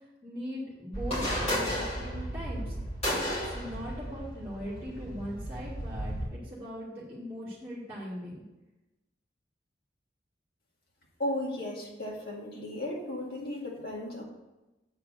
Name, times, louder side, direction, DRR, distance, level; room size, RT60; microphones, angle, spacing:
voice 1, 0.2-2.8 3.2-8.4, equal, 10° right, -10 dB, 2.0 m, -40 dB
sound 1, 0.9-6.3, equal, 35° left, 3.2 m, -34 dB
voice 2, 11.2-14.2, left 1 dB, 55° left, -3 dB, 2.1 m, -35 dB
7.8 x 4.6 x 6.4 m, 1.0 s
head